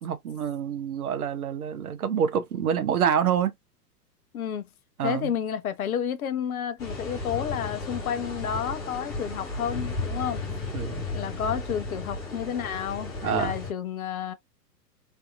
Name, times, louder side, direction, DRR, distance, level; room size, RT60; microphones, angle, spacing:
voice 1, 0.0-3.5 5.0-5.3 10.7-11.0 13.2-13.5, right 8 dB, 60° right, 0.9 m, -27 dB
voice 2, 4.3-4.7 5.0-10.4 11.1-14.3, left 8 dB, 60° left, 0.8 m, -31 dB
sound 1, 6.8-13.7, left 3 dB, 5° left, 0.4 m, -34 dB
3.5 x 2.7 x 2.4 m
figure-of-eight pair, 110°, 49 cm